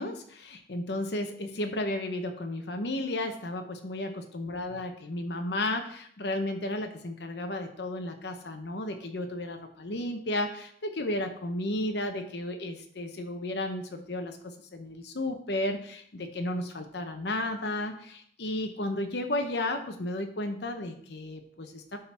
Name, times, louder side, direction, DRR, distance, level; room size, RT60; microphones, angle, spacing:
voice 1, 0.0-22.0, left 1 dB, 70° left, 5 dB, 0.8 m, -33 dB
11.5 x 3.8 x 4.3 m, 0.62 s
head